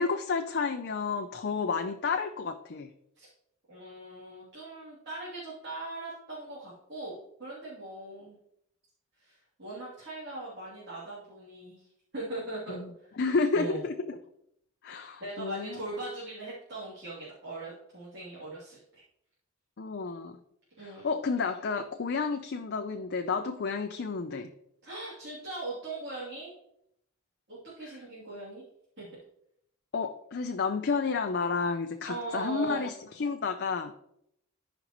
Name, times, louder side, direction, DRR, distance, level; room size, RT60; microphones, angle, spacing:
voice 1, 0.0-2.9 12.7-12.9 13.2-13.9 14.8-15.8 19.8-20.4 20.8-24.5 27.8-27.9 29.9-33.9, left 4 dB, 50° left, 6 dB, 0.5 m, -31 dB
voice 2, 3.7-8.4 9.2-13.2 13.5-13.8 15.2-19.0 20.8-21.1 24.8-26.5 27.5-28.6 29.0-29.1 32.0-32.8, right 2 dB, 50° right, -9 dB, 2.9 m, -40 dB
13.5 x 5.3 x 3.0 m, 0.75 s
head